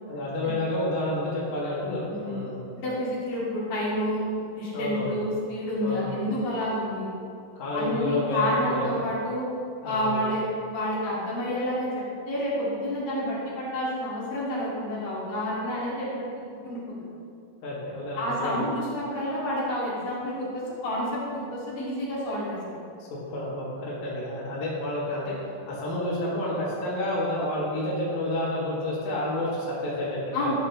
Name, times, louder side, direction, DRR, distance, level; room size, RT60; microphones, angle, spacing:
voice 1, 0.1-2.6 4.7-5.2 5.8-6.2 7.5-9.0 9.8-10.3 17.6-18.6 23.0-30.5, left 1 dB, 60° left, -8 dB, 3.5 m, -30 dB
voice 2, 2.8-7.1 7.7-9.5 9.8-16.1 16.4-17.1 18.2-22.6 30.3-30.5, left 1 dB, 85° left, -8 dB, 4.2 m, -29 dB
12.5 x 9.3 x 3.1 m, 2.4 s
omnidirectional pair, 3.8 m